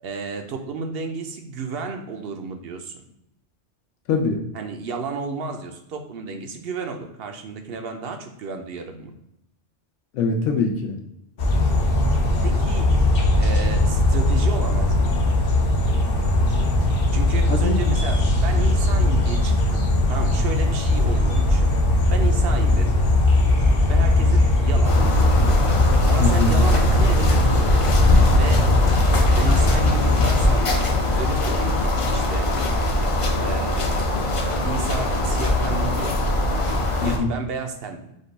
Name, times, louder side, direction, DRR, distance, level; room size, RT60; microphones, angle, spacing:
voice 1, 0.0-3.0 4.5-9.1 12.4-12.9 13.4-15.2 17.1-19.8 20.1-21.7 22.1-23.0 23.9-25.0 26.1-27.8 28.3-28.7 29.4-32.5 33.4-34.1 34.4-36.2 37.0-38.1, right 4 dB, 60° right, 5 dB, 0.8 m, -32 dB
voice 2, 4.1-4.4 10.1-11.0 17.5-17.8 26.2-26.5 37.0-37.3, left 4 dB, 85° left, 2 dB, 1.0 m, -23 dB
sound 1, 11.4-30.5, left 1 dB, 55° left, 0.9 m, -19 dB
sound 2, 24.8-37.2, left 1 dB, 40° left, 0.5 m, -22 dB
5.1 x 2.3 x 3.9 m, 0.84 s
omnidirectional pair, 1.2 m